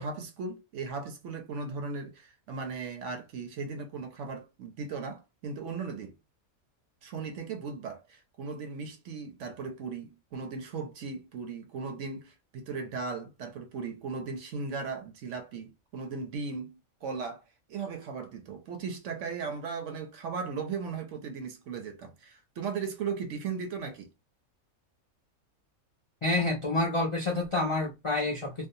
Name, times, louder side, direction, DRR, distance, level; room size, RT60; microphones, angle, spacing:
voice 1, 0.0-6.1 7.0-17.4 17.7-24.1, right 5 dB, 70° right, 0.9 m, -37 dB
voice 2, 26.2-28.6, left 2 dB, 50° left, 0.3 m, -28 dB
2.6 x 2.1 x 2.6 m
omnidirectional pair, 1.5 m